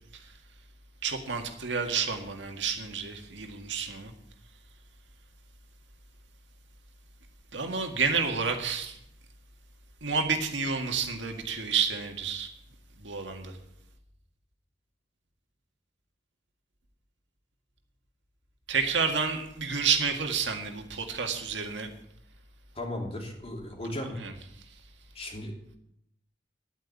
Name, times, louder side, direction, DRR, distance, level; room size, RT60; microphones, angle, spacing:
voice 1, 1.0-4.1 7.5-9.0 10.0-12.5 13.0-13.6 18.7-21.9 24.2-24.3 24.7-24.8, right 5 dB, 85° right, 4 dB, 1.9 m, -30 dB
voice 2, 22.7-24.2 25.1-25.5, left 1 dB, 35° left, 1 dB, 3.0 m, -36 dB
10.5 x 9.4 x 8.4 m, 0.76 s
head